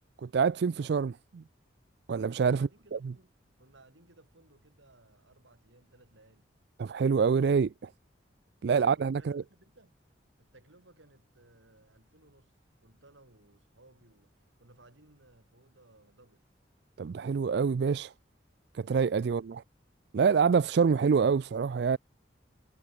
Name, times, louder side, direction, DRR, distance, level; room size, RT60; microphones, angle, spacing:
voice 1, 0.2-1.4 2.1-3.0 6.8-7.9 8.6-9.4 17.0-18.1 18.7-19.6 20.1-22.0, right 5 dB, 60° right, 0.4 m, -26 dB
voice 2, 2.4-6.5 8.7-9.9 10.4-16.5 19.2-19.5, right 2 dB, 90° right, 5.3 m, -60 dB
head